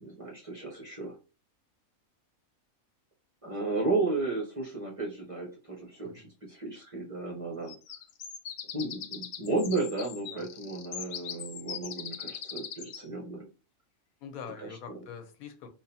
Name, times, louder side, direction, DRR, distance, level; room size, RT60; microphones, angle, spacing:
voice 1, 0.0-1.1 3.4-7.7 8.7-13.4 14.6-15.0, right 3 dB, 30° right, 0.7 m, -33 dB
sound 1, 7.7-13.1, left 8 dB, 65° left, 0.7 m, -41 dB
voice 2, 14.2-15.7, left 7 dB, 80° left, 1.1 m, -44 dB
4.2 x 2.5 x 2.7 m
omnidirectional pair, 1.5 m